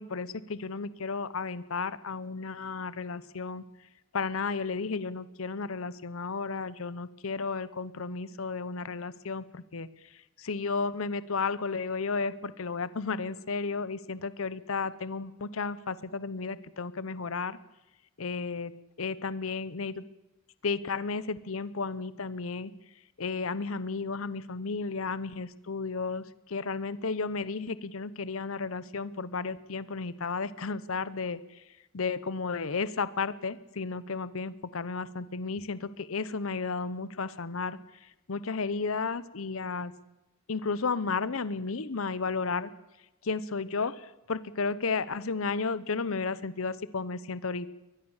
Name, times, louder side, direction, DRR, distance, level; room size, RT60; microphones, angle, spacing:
voice 1, 0.0-3.6 4.1-9.9 10.4-17.6 18.2-18.7 19.0-20.0 20.6-22.7 23.2-26.2 26.5-31.4 31.9-37.8 38.3-39.9 40.5-42.7 43.2-47.7, left 4 dB, 80° left, 17 dB, 0.8 m, -33 dB
23.0 x 19.5 x 7.2 m, 0.98 s
head